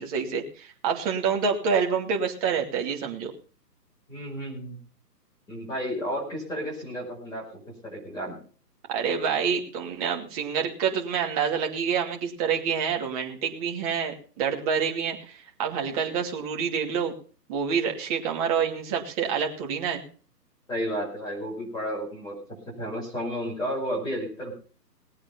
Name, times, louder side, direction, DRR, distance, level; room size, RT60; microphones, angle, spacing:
voice 1, 0.0-3.3 8.9-17.1 17.5-20.0, right 6 dB, 20° right, 1 dB, 2.6 m, -27 dB
voice 2, 4.1-4.8 5.5-7.4 7.8-8.4 20.7-22.4 22.7-24.5, equal, 10° left, -4 dB, 5.4 m, -32 dB
20.0 x 8.6 x 5.5 m, 0.40 s
hypercardioid pair, 155°, 50 cm